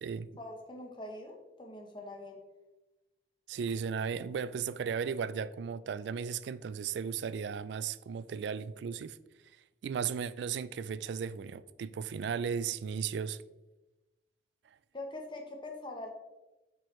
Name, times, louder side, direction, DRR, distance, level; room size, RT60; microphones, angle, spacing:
voice 1, 0.4-2.4 14.9-16.1, left 2 dB, 30° left, 0.9 m, -43 dB
voice 2, 3.5-9.2 9.8-13.4, right 6 dB, 80° right, 0.3 m, -35 dB
8.5 x 4.7 x 3.1 m
head